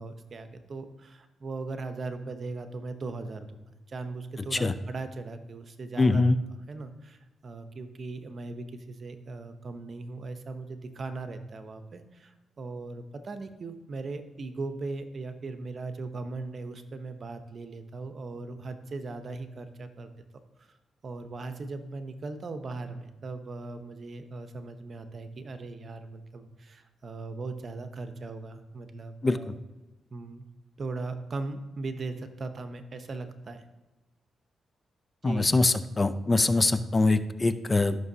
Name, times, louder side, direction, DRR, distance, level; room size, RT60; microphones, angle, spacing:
voice 1, 0.0-6.2 6.7-20.1 20.6-20.7 21.0-29.6 30.1-30.5 30.8-33.6 35.2-35.5, right 3 dB, 50° right, 8 dB, 0.9 m, -39 dB
voice 2, 6.0-6.4 29.2-29.4 35.2-38.0, left 3 dB, 30° left, 12 dB, 0.6 m, -23 dB
13.5 x 6.1 x 2.8 m, 1.1 s
cardioid pair, 65°, 0 cm